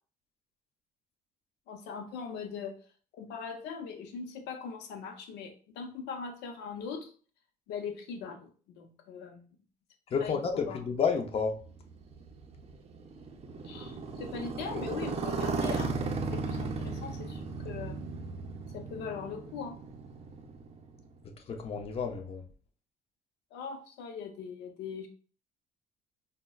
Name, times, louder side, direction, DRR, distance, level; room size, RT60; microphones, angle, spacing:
voice 1, 1.7-2.8 3.1-7.1 7.7-8.5 8.8-9.4 10.2-10.8 13.6-15.9 16.3-18.0 18.7-19.8 23.5-25.1, left 6 dB, 85° left, 6 dB, 0.6 m, -40 dB
voice 2, 10.1-11.5 21.5-22.4, left 5 dB, 35° left, 4 dB, 0.5 m, -30 dB
Motorcycle, 11.3-21.3, right 4 dB, 40° right, 0.5 m, -36 dB
5.1 x 2.1 x 2.3 m, 0.41 s
cardioid pair, 110°, 17 cm